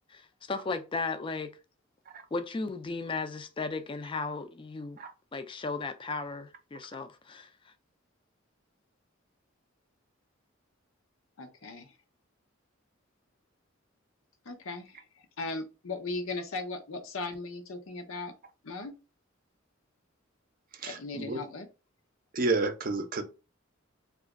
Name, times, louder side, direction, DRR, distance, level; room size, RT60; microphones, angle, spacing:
voice 1, 0.1-1.5 2.3-5.0 5.3-7.7, left 3 dB, 25° left, 0.4 m, -35 dB
voice 2, 11.4-11.9 14.5-15.0 15.4-18.3 18.6-18.9 20.9-21.7, left 3 dB, 85° left, 0.7 m, -37 dB
voice 3, 20.8-21.4 22.3-23.2, right 3 dB, 45° right, 0.5 m, -30 dB
2.9 x 2.4 x 3.6 m
head